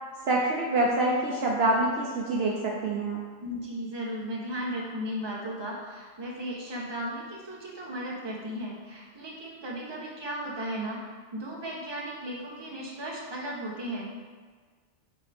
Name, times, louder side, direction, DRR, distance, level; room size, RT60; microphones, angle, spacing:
voice 1, 0.3-3.2, right 2 dB, 60° right, -2 dB, 0.9 m, -26 dB
voice 2, 3.4-11.0 11.3-14.1, equal, 20° right, -3 dB, 1.0 m, -35 dB
7.7 x 3.6 x 3.5 m, 1.5 s
omnidirectional pair, 1.3 m